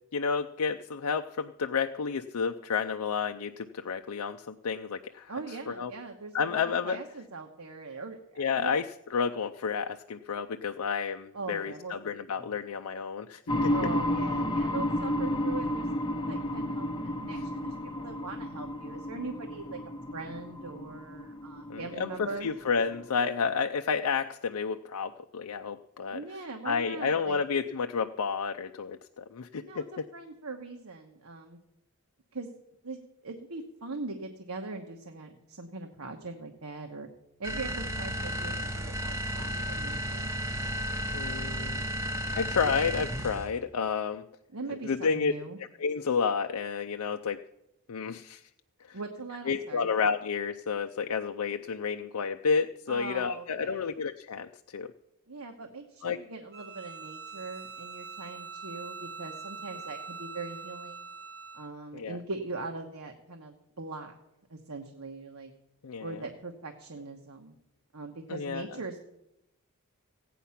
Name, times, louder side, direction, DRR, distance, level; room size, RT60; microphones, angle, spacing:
voice 1, 0.1-5.3 5.7-5.9 6.3-7.0 8.4-8.9 9.1-13.7 21.7-26.2 26.6-30.1 41.1-41.9 42.3-44.2 44.8-45.3 45.8-47.4 47.9-48.4 48.9-49.0 49.5-54.9 56.0-56.2 61.9-62.2 65.8-66.2 68.3-68.6, left 5 dB, 90° left, 7 dB, 0.5 m, -31 dB
voice 2, 5.3-8.7 11.3-11.9 12.4-12.6 13.7-19.8 20.1-22.5 26.1-27.4 29.6-31.6 32.3-32.5 32.8-33.0 33.2-37.1 37.4-40.3 44.5-45.6 48.9-49.9 52.9-53.9 55.3-61.1 61.5-64.1 64.5-65.5 66.0-67.6 67.9-69.1, right 3 dB, 80° right, 3 dB, 1.2 m, -41 dB
sound 1, 13.5-23.0, left 1 dB, 20° left, 0.8 m, -32 dB
sound 2, 37.4-43.6, equal, 10° right, 0.6 m, -33 dB
Bowed string instrument, 56.5-61.7, right 5 dB, 50° right, 0.7 m, -43 dB
16.5 x 9.2 x 5.8 m, 0.87 s
head